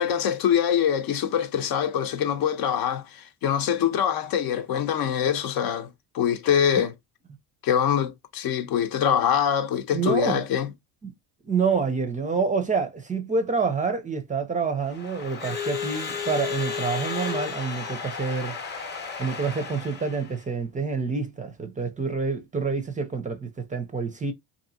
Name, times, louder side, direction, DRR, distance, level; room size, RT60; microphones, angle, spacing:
voice 1, 0.0-5.9 6.1-6.9 7.6-10.7, left 8 dB, 60° left, 0.8 m, -24 dB
voice 2, 9.9-10.4 11.0-11.1 11.5-18.6 19.2-24.3, right 5 dB, 20° right, 0.5 m, -27 dB
Crowd / Alarm, 14.8-20.4, left 6 dB, 25° left, 0.8 m, -33 dB
2.8 x 2.6 x 2.6 m
supercardioid pair, 105°, 40 cm